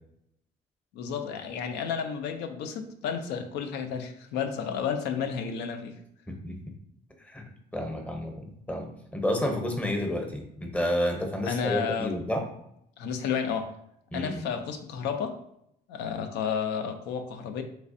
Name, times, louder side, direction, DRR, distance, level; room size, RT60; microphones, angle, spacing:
voice 1, 0.9-6.0 11.5-12.1 13.0-13.7 14.1-15.4 15.9-17.6, left 7 dB, 85° left, 7 dB, 0.5 m, -31 dB
voice 2, 7.7-12.4 14.1-14.4, left 1 dB, 10° left, 3 dB, 0.7 m, -30 dB
3.3 x 3.2 x 2.6 m, 0.76 s
cardioid pair, 110°, 17 cm